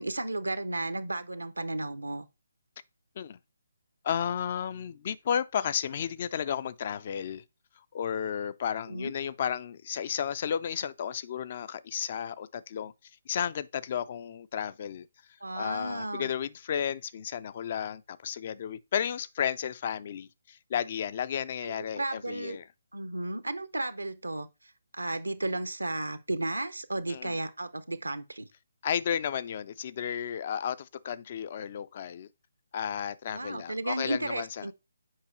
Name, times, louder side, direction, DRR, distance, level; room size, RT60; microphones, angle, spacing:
voice 1, 0.0-2.3 8.9-9.1 15.4-16.3 21.7-22.6 22.9-24.5 24.9-28.5 33.3-34.7, right 2 dB, 80° right, 0.6 m, -33 dB
voice 2, 4.0-7.4 7.8-12.9 13.3-15.1 15.5-22.6 27.1-27.4 28.8-32.3 32.7-34.7, left 8 dB, 40° left, 0.4 m, -33 dB
7.3 x 4.8 x 3.1 m
figure-of-eight pair, 145°, 0 cm